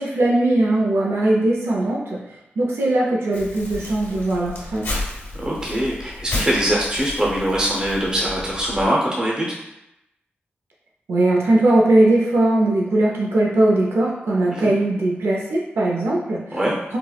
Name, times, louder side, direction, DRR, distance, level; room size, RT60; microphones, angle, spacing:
voice 1, 0.0-2.2 2.6-4.9 11.1-16.6, right 1 dB, 90° right, -3 dB, 0.5 m, -19 dB
Crumpling crinkling, 3.3-8.9, left 2 dB, 80° left, 1.0 m, -32 dB
voice 2, 5.4-9.5 14.5-14.7 16.5-16.8, equal, 20° right, -4 dB, 0.6 m, -22 dB
4.3 x 2.0 x 2.3 m, 0.89 s
wide cardioid pair, 70°, 4 cm